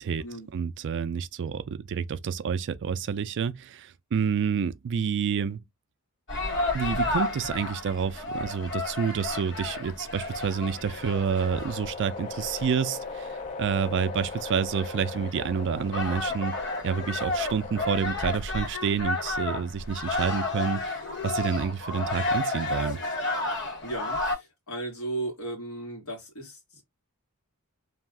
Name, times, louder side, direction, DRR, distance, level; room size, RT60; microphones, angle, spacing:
voice 1, 0.5-5.6 6.7-16.6 16.8-23.0, right 6 dB, 60° right, 0.4 m, -29 dB
sound 1, 6.3-24.4, left 2 dB, 55° left, 1.6 m, -32 dB
sound 2, 10.2-18.4, left 4 dB, 30° left, 0.5 m, -39 dB
voice 2, 23.8-26.8, right 2 dB, 75° left, 1.5 m, -36 dB
2.7 x 2.4 x 3.3 m
head